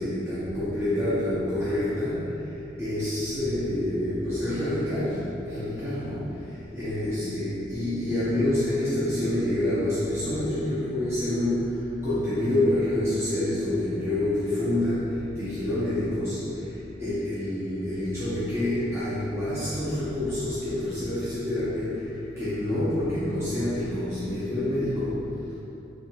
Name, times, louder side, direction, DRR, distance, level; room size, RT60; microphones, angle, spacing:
voice 1, 0.0-2.5 2.8-25.4, left 1 dB, 15° right, -13 dB, 0.6 m, -27 dB
4.4 x 3.6 x 2.2 m, 2.9 s
head